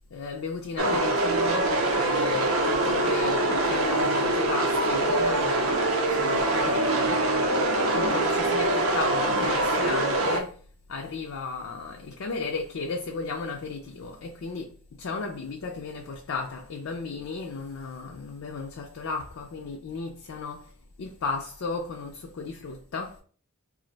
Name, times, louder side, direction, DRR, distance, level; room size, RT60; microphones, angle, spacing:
voice 1, 0.1-5.7 6.1-7.3 7.6-10.6 10.9-23.2, left 4 dB, 75° left, 0.4 m, -35 dB
sound 1, 0.8-10.4, right 1 dB, 75° right, 0.6 m, -24 dB
2.5 x 2.1 x 3.8 m
head